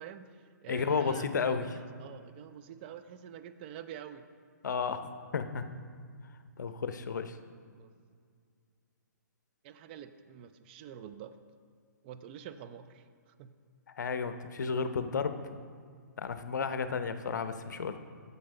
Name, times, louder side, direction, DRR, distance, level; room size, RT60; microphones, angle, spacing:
voice 1, 0.0-4.2 7.8-7.9 9.6-11.3 12.0-13.0 13.4-13.5, right 9 dB, 30° right, 10 dB, 0.4 m, -47 dB
voice 2, 0.7-1.7 4.6-5.0 5.3-5.7 6.6-7.4 14.0-15.4 16.2-18.0, left 5 dB, 70° left, 10 dB, 0.7 m, -32 dB
8.6 x 7.0 x 5.3 m, 2.1 s
hypercardioid pair, 135°, 10 cm